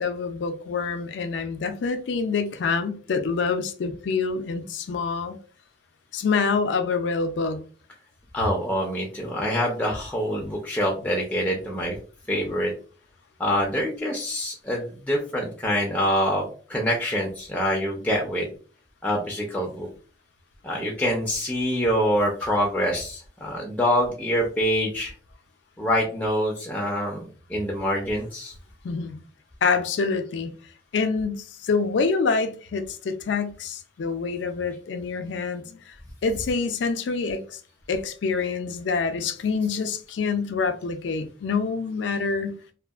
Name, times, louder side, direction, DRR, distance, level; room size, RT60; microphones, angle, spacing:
voice 1, 0.0-5.4 6.1-7.6 28.8-29.2 29.6-30.5 30.9-35.9 36.2-37.6 37.9-42.6, left 4 dB, 80° left, 0.4 m, -26 dB
voice 2, 8.3-12.0 12.3-12.7 13.4-18.5 19.0-19.9 20.6-25.1 25.8-28.5, equal, 10° left, 0.4 m, -25 dB
2.7 x 2.4 x 2.3 m
head